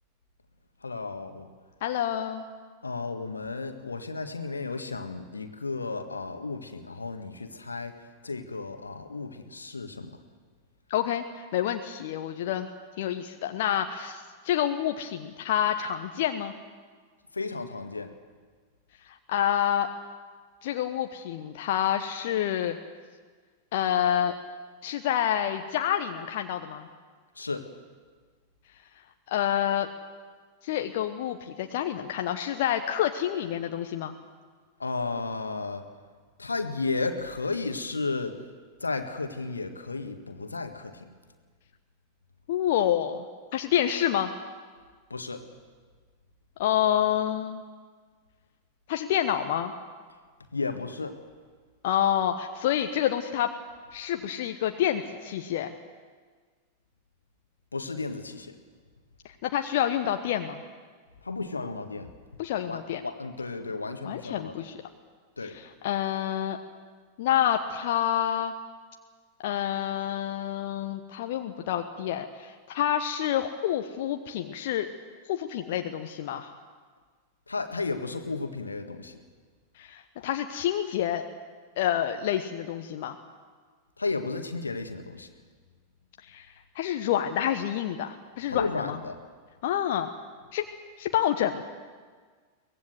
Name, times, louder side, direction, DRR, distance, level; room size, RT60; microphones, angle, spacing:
voice 1, 0.8-1.5 2.8-7.9 8.2-10.2 17.3-18.1 27.4-27.7 34.8-35.8 36.4-38.3 38.8-41.1 45.1-45.4 50.5-51.2 57.7-58.6 61.2-62.1 62.7-64.7 65.4-65.6 77.5-79.2 84.0-85.3 88.5-89.2, left 3 dB, 80° left, 7 dB, 1.7 m, -33 dB
voice 2, 1.8-2.5 10.9-12.7 13.0-16.5 19.1-19.9 20.6-22.8 23.7-24.3 24.8-26.9 29.3-29.9 30.6-34.2 42.5-43.2 43.5-44.3 46.6-47.6 48.9-49.7 51.8-53.5 53.9-55.7 59.4-60.6 62.4-63.0 64.0-64.8 65.4-66.6 67.2-68.5 69.4-74.9 75.3-76.5 79.8-81.2 81.8-83.2 86.3-86.5 86.7-89.0 89.6-90.1 90.5-90.6 91.0-91.6, left 10 dB, 55° left, 6 dB, 1.0 m, -28 dB
23.5 x 19.0 x 7.9 m, 1.5 s
figure-of-eight pair, 90°, 0 cm